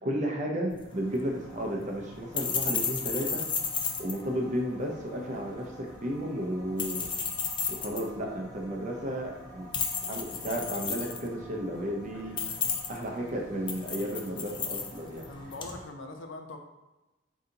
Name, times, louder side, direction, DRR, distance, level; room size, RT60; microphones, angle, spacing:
voice 1, 0.0-3.4 4.0-7.1 7.7-9.7 10.1-12.4 12.9-15.3, equal, 40° right, 0 dB, 0.7 m, -33 dB
sound 1, 0.7-15.8, left 5 dB, 25° left, 0.4 m, -35 dB
sound 2, 0.9-15.9, equal, 40° left, 1.0 m, -52 dB
voice 2, 12.1-12.7 15.3-16.6, left 2 dB, 80° left, 4 dB, 0.5 m, -43 dB
4.0 x 2.8 x 3.8 m, 1.1 s
head